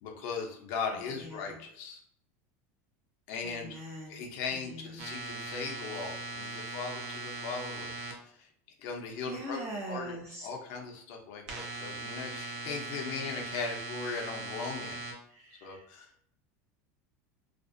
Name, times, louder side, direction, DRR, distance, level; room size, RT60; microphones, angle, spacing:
voice 1, 0.0-2.0 3.3-3.8 4.1-7.9 8.4-8.5 8.8-9.6 9.9-10.2 10.4-15.0 15.6-16.1, left 5 dB, 65° left, 2 dB, 0.6 m, -38 dB
voice 2, 1.1-1.6 3.4-4.2 4.5-5.0 9.2-10.5 15.3-15.9, right 1 dB, 35° right, -1 dB, 0.5 m, -42 dB
sound 1, 5.0-8.1 11.5-15.1, right 3 dB, 70° right, 0.7 m, -40 dB
2.5 x 2.1 x 2.5 m, 0.69 s
supercardioid pair, 130°, 8 cm